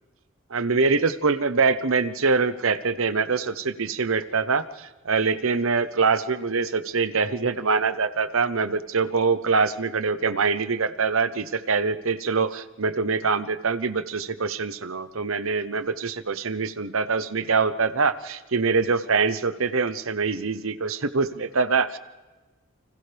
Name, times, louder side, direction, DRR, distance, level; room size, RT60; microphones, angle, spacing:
voice 1, 0.5-22.0, right 4 dB, 80° right, 12 dB, 0.9 m, -24 dB
29.5 x 26.0 x 3.5 m, 1.2 s
head